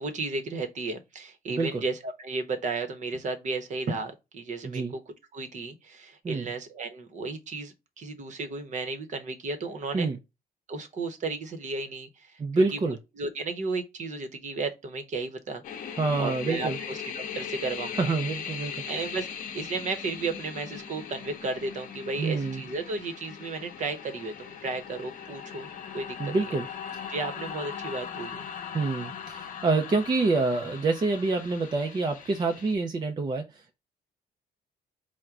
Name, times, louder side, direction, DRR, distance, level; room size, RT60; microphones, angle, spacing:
voice 1, 0.0-10.1 10.7-15.6 16.2-18.1 18.9-19.3 19.5-25.7 25.9-26.5 27.1-28.4, right 3 dB, 45° right, 0.9 m, -34 dB
voice 2, 1.5-1.8 4.6-4.9 6.2-6.4 9.9-10.2 12.4-12.9 16.0-16.8 18.0-18.7 22.2-22.6 26.2-26.7 26.9-27.0 28.7-33.8, right 3 dB, 25° right, 0.5 m, -27 dB
sound 1, 15.6-32.7, left 7 dB, 50° left, 0.7 m, -39 dB
4.5 x 2.1 x 3.6 m
cardioid pair, 145°, 17 cm